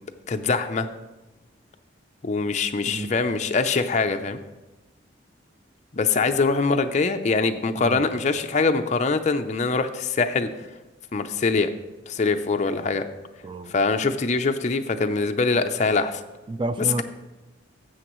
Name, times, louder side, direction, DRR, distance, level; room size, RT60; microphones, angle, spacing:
voice 1, 0.3-0.9 2.2-4.4 5.9-10.5 11.1-11.7 12.1-13.0 13.7-16.2, left 4 dB, 40° left, 7 dB, 0.5 m, -23 dB
voice 2, 16.5-17.0, right 2 dB, 25° right, 11 dB, 0.4 m, -30 dB
13.0 x 7.8 x 3.1 m, 1.1 s
head